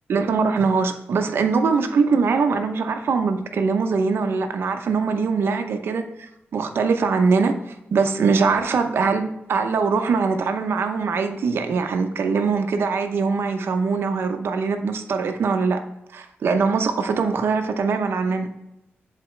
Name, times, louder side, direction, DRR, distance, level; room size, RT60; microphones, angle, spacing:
voice 1, 0.1-6.3 6.5-7.5 7.9-15.8 16.1-18.5, right 5 dB, 80° right, 0.6 m, -22 dB
7.7 x 4.2 x 3.2 m
wide cardioid pair, 145°, 4 cm